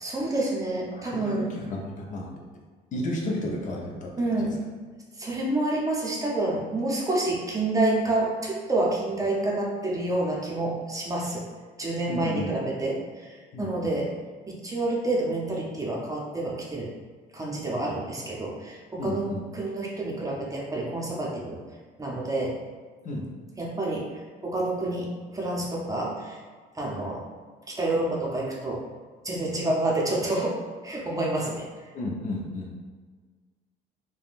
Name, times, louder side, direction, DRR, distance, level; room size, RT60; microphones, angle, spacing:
voice 1, 0.0-1.5 4.2-4.5 5.2-11.4 11.8-14.1 14.5-16.9 17.3-19.3 19.5-21.6 22.0-22.6 23.6-24.1 24.4-26.4 26.7-27.2 27.7-28.8 29.2-30.6 30.8-31.7, right 2 dB, 20° right, -3 dB, 0.6 m, -28 dB
voice 2, 0.9-2.3 2.9-4.5 12.1-12.5 13.5-14.0 19.0-19.6 23.0-23.3 31.9-32.8, left 1 dB, 50° left, -1 dB, 0.6 m, -33 dB
3.5 x 2.2 x 2.4 m, 1.5 s
cardioid pair, 110°, 17 cm